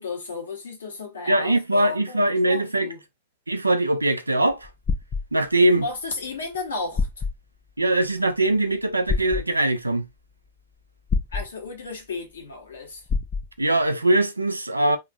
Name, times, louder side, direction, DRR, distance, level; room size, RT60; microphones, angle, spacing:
voice 1, 0.0-3.0 5.7-7.1 11.3-13.0, left 3 dB, 75° left, 1.2 m, -34 dB
voice 2, 1.3-2.9 3.5-4.7 5.3-5.8 7.8-10.1 13.6-15.0, right 1 dB, 90° right, 0.4 m, -21 dB
sound 1, 4.5-5.3 6.5-6.6 7.0-7.4 9.1-9.4 11.1-11.5 13.1-13.5, left 4 dB, 25° left, 0.4 m, -25 dB
2.9 x 2.5 x 2.2 m
figure-of-eight pair, 100°, 0 cm